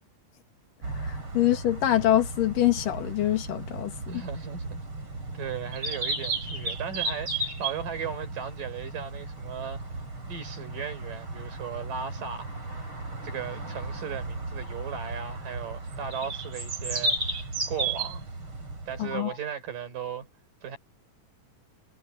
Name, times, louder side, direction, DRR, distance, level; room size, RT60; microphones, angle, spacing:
sound 1, 0.8-19.2, right 2 dB, 40° right, 6.4 m, -35 dB
voice 1, 1.0-4.2 19.0-19.4, left 13 dB, 80° left, 3.4 m, -25 dB
voice 2, 4.1-4.8 5.3-9.8 10.3-12.8 13.2-18.2 18.9-20.3 20.6-20.8, right 7 dB, 75° right, 6.1 m, -36 dB
omnidirectional pair, 3.8 m